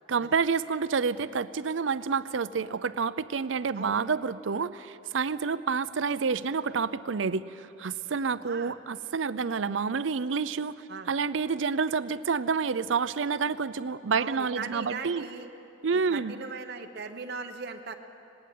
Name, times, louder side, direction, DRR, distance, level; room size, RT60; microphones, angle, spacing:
voice 1, 0.1-10.8 11.1-15.3 15.8-16.3, right 5 dB, 80° right, 15 dB, 0.6 m, -28 dB
voice 2, 8.4-8.7 10.9-11.1 14.2-15.5 16.1-17.9, right 4 dB, 60° right, 4 dB, 1.0 m, -39 dB
19.5 x 19.0 x 8.5 m, 2.8 s
head